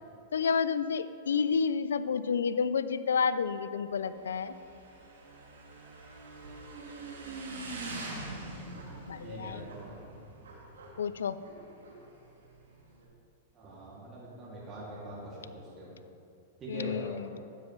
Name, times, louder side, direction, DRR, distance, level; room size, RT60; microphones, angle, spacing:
voice 1, 0.3-4.5 9.1-9.6 11.0-11.4 16.7-17.4, left 6 dB, 85° left, 14 dB, 0.4 m, -30 dB
Motorcycle / Engine, 3.8-13.0, right 2 dB, 85° right, 1.8 m, -44 dB
voice 2, 9.2-10.0 13.5-15.9 16.6-17.2, right 1 dB, 30° right, -6 dB, 2.5 m, -43 dB
12.5 x 8.4 x 3.2 m, 2.6 s
hypercardioid pair, 120°, 0 cm